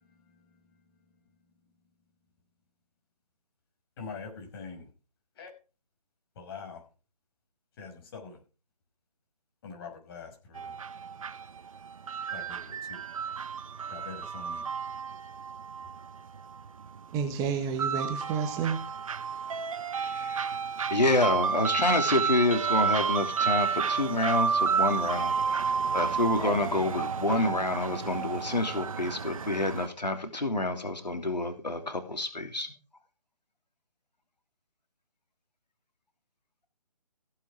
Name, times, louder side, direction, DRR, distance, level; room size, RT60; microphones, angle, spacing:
voice 1, 4.0-4.9 5.4-5.5 6.4-6.8 7.8-8.4 9.6-10.7 12.3-13.0 13.9-14.7, left 5 dB, 35° left, 6.1 m, -43 dB
sound 1, 10.6-29.9, right 6 dB, 55° right, 1.0 m, -31 dB
voice 2, 17.1-18.8, right 6 dB, 15° right, 1.3 m, -30 dB
voice 3, 20.0-20.6 20.9-32.7, left 2 dB, 90° left, 3.2 m, -28 dB
16.5 x 8.4 x 4.9 m
figure-of-eight pair, 145°, 21 cm